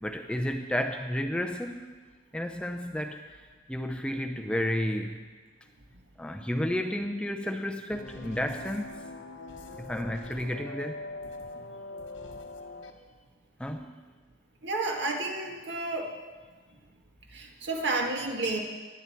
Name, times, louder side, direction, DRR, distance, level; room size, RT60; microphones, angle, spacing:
voice 1, 0.0-2.0 2.3-3.4 3.7-5.3 6.2-8.9 9.8-11.1 13.6-13.9, left 1 dB, 5° left, 4 dB, 0.5 m, -32 dB
sound 1, 7.9-12.9, left 2 dB, 80° left, 1.3 m, -42 dB
voice 2, 14.6-16.1 17.3-18.6, right 2 dB, 65° right, 1 dB, 1.9 m, -31 dB
18.5 x 11.0 x 4.4 m, 1.4 s
head